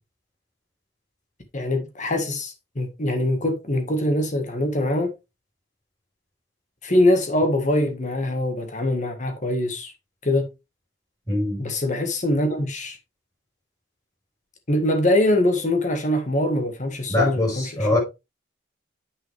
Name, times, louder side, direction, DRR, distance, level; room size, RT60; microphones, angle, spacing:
voice 1, 1.5-5.1 6.8-9.9 10.2-10.5 11.6-13.0 14.7-18.0, left 1 dB, 40° left, 1.7 m, -23 dB
voice 2, 11.3-11.6 17.1-18.0, left 2 dB, 20° left, 5.2 m, -22 dB
8.3 x 6.4 x 3.4 m
head